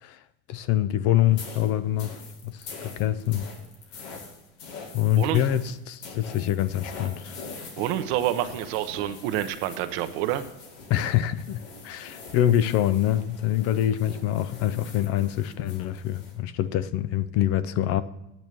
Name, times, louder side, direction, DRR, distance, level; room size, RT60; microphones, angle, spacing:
voice 1, 0.5-3.5 4.9-7.4 10.9-18.0, left 12 dB, 50° left, 0.5 m, -25 dB
sound 1, 1.3-16.4, left 4 dB, 90° left, 2.1 m, -44 dB
voice 2, 7.8-10.4, right 12 dB, 75° right, 0.9 m, -27 dB
9.2 x 6.2 x 6.7 m
cardioid pair, 145°, 31 cm